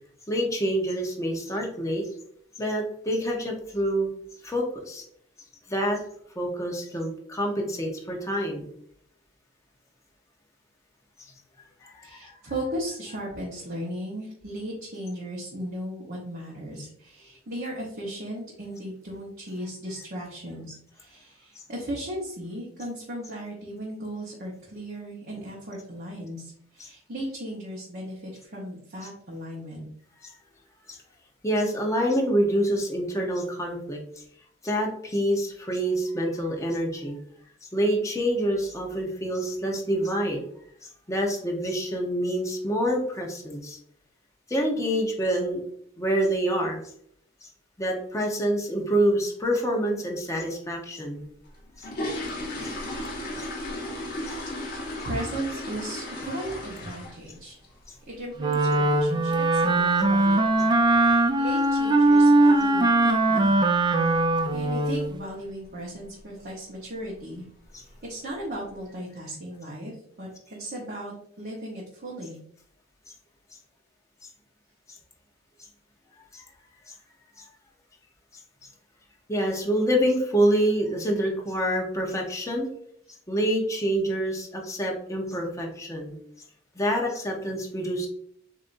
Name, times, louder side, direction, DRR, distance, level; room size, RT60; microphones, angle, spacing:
voice 1, 0.3-2.0 2.6-4.1 4.4-5.0 5.7-6.0 6.4-8.7 11.8-12.4 26.8-26.9 30.9-31.0 31.4-34.0 34.6-37.2 37.7-40.4 41.1-43.8 44.5-45.6 46.0-46.8 47.8-51.2 51.8-51.9 52.6-52.7 53.4-53.5 54.3-54.4 64.1-64.4 67.7-67.8 76.3-76.4 77.4-77.5 79.3-82.7 83.3-86.2 86.7-88.1, equal, 15° left, -1 dB, 0.9 m, -27 dB
voice 2, 12.0-29.9 54.5-57.6 58.1-63.5 64.0-64.2 64.5-67.5 68.0-72.4, right 1 dB, 50° right, -4 dB, 1.1 m, -36 dB
sound 1, 51.5-57.4 57.6-57.9 58.3-58.4 58.7-58.9 59.3-59.5 59.7-59.8 60.4-60.5 60.8-60.9 61.4-61.8 62.0-62.1 62.5-62.7 63.1-63.2 63.6-63.7 64.3-64.6 64.9-65.3 65.6-65.7 66.2-66.3 67.0-67.2 67.6-68.0 68.5-68.6, left 1 dB, 50° left, 1.4 m, -35 dB
Wind instrument woodwind instrument, 58.4-65.1, right 2 dB, 20° right, 0.4 m, -20 dB
7.4 x 2.7 x 2.6 m, 0.66 s
head